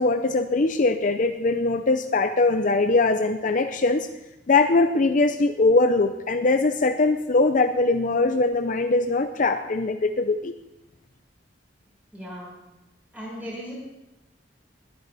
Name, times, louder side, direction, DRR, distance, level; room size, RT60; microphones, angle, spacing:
voice 1, 0.0-4.1 4.5-10.5, left 3 dB, 45° left, 8 dB, 0.6 m, -21 dB
voice 2, 12.1-12.5 13.1-13.7, equal, 10° right, -5 dB, 6.2 m, -36 dB
21.0 x 10.5 x 4.1 m, 0.97 s
head